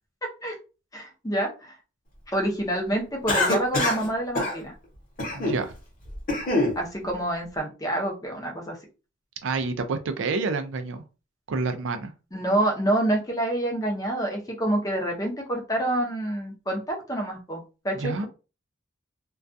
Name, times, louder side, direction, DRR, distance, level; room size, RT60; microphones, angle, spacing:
voice 1, 0.9-1.7 2.3-4.7 6.8-8.8 12.3-18.3, right 1 dB, 15° left, 0 dB, 0.6 m, -27 dB
Cough, 3.3-4.1 4.3-4.6 5.2-5.6 6.1-6.8, left 2 dB, 40° left, 0.9 m, -24 dB
voice 2, 5.3-5.8 9.4-11.0 11.5-12.1 17.9-18.3, right 4 dB, 60° right, 8 dB, 0.3 m, -28 dB
2.3 x 2.3 x 2.5 m, 0.32 s
head